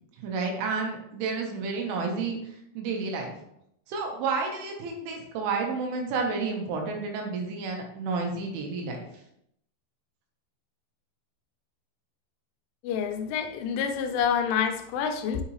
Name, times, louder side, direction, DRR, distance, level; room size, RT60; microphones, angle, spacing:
voice 1, 0.2-2.4 2.8-3.3 3.9-9.0, right 4 dB, 75° right, 3.7 m, -30 dB
voice 2, 12.8-15.4, left 7 dB, 80° left, 3.1 m, -27 dB
9.2 x 6.9 x 3.2 m
omnidirectional pair, 5.8 m